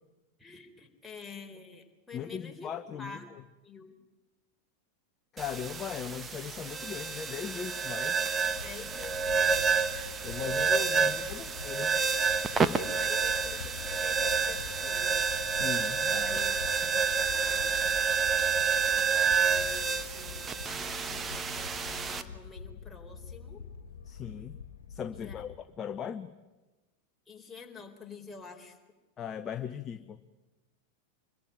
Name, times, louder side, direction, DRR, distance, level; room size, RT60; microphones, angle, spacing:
voice 1, 0.4-2.7 3.0-3.3 3.6-4.0 7.5-7.6 8.6-9.7 10.4-10.7 12.5-15.2 16.2-16.6 16.9-17.7 19.4-23.6 25.1-25.4 27.3-28.8, left 5 dB, 10° left, 2 dB, 4.0 m, -48 dB
voice 2, 2.1-3.2 5.3-8.3 10.2-12.0 15.5-16.8 24.1-24.6 24.9-26.3 29.2-30.2, left 8 dB, 25° left, 11 dB, 1.0 m, -39 dB
sound 1, 5.4-22.2, right 5 dB, 20° right, 1.4 m, -29 dB
sound 2, 8.4-25.6, left 6 dB, 65° left, 1.7 m, -45 dB
25.5 x 22.5 x 9.7 m, 1.1 s
figure-of-eight pair, 90°, 0 cm